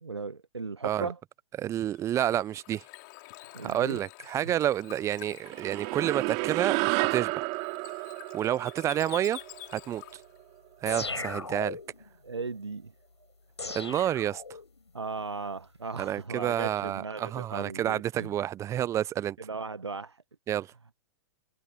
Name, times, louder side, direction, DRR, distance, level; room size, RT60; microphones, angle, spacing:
voice 1, 0.0-1.2 3.5-4.0 4.4-4.5 12.2-12.9 14.9-18.3 19.4-20.2, right 4 dB, 90° right, 1.1 m, -37 dB
voice 2, 1.6-2.8 3.6-7.5 8.3-9.4 9.7-10.0 10.8-11.8 13.7-14.4 16.0-19.4 20.5-20.7, right 11 dB, 20° right, 0.5 m, -29 dB
Bird / Water, 1.9-10.4, left 25 dB, 45° left, 4.0 m, -49 dB
sound 1, 5.4-10.1, right 31 dB, 40° right, 3.4 m, -31 dB
sound 2, 10.9-12.1 13.6-14.9, left 4 dB, 85° left, 7.1 m, -37 dB
figure-of-eight pair, 110°, 14 cm